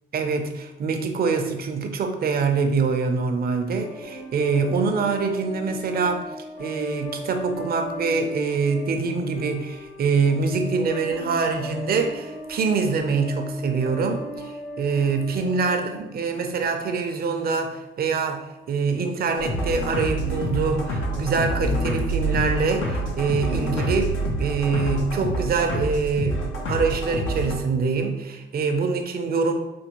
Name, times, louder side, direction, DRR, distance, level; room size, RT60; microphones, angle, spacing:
voice 1, 0.1-6.3 6.6-29.5, right 4 dB, 50° right, 6 dB, 0.5 m, -24 dB
sound 1, 3.8-16.8, equal, 70° left, 1.5 m, -38 dB
sound 2, 19.4-27.6, right 1 dB, 90° left, 0.7 m, -27 dB
4.3 x 2.2 x 3.0 m, 1.0 s
cardioid pair, 90°, 20 cm